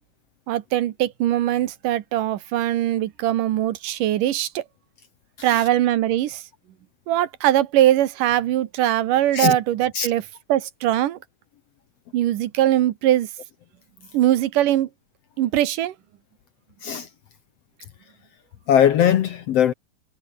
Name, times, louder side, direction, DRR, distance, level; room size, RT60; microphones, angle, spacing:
voice 1, 0.5-4.6 5.4-6.4 7.1-10.2 10.5-11.2 12.1-13.3 14.1-14.9 15.4-15.9, right 13 dB, 75° right, 2.7 m, -21 dB
voice 2, 18.7-19.7, left 9 dB, 65° left, 1.7 m, -20 dB
omnidirectional pair, 3.9 m